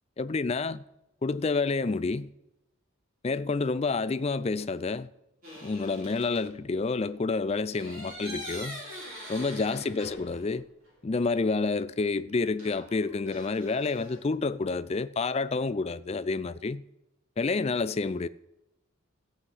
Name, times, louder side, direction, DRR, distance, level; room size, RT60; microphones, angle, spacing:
voice 1, 0.2-0.8 1.2-2.3 3.2-5.1 5.6-8.8 9.3-10.6 11.0-16.8 17.4-18.3, left 3 dB, 30° left, 0.4 m, -29 dB
sound 1, 5.4-6.5 7.7-10.6 10.9-11.0 12.6-14.2, equal, 40° right, 5.5 m, -43 dB
14.5 x 5.7 x 8.0 m
head